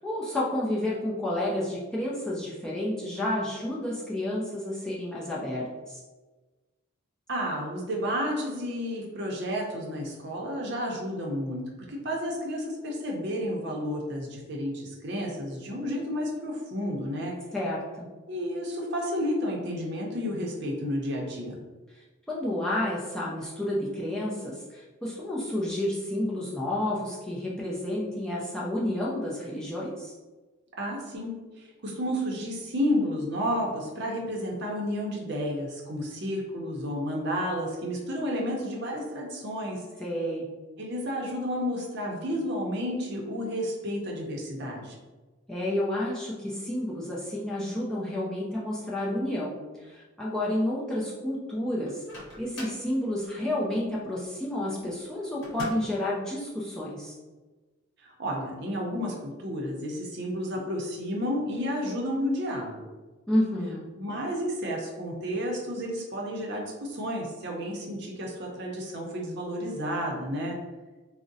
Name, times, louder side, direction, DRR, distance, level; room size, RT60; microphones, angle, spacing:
voice 1, 0.0-6.0 17.5-18.1 22.3-30.1 40.0-40.5 45.5-52.0 52.4-57.2 63.3-63.9, left 1 dB, 5° left, -6 dB, 0.4 m, -30 dB
voice 2, 7.3-11.6 11.9-17.3 18.3-21.6 30.8-39.8 40.8-44.9 58.0-62.8 64.0-70.6, equal, 55° right, -1 dB, 0.6 m, -31 dB
Microwave oven, 51.8-52.9 55.4-56.0, equal, 65° left, 0.8 m, -41 dB
3.6 x 2.0 x 2.6 m, 1.2 s
head